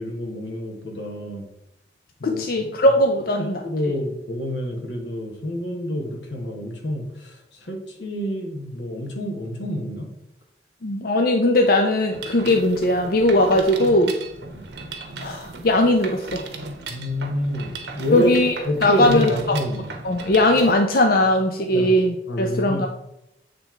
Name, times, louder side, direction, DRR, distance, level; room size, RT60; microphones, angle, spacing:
voice 1, 0.0-1.4 2.2-2.7 3.3-10.1 14.5-14.6 16.9-19.9 21.7-21.9 22.3-22.9, left 1 dB, 80° left, 2 dB, 1.4 m, -28 dB
voice 2, 2.2-3.6 10.8-14.2 15.2-16.4 18.1-18.6 18.8-19.3 20.0-22.9, left 1 dB, 50° left, 4 dB, 0.5 m, -19 dB
Mechanisms, 12.1-20.7, right 3 dB, 65° right, 1.0 m, -36 dB
7.9 x 3.4 x 4.5 m, 0.85 s
head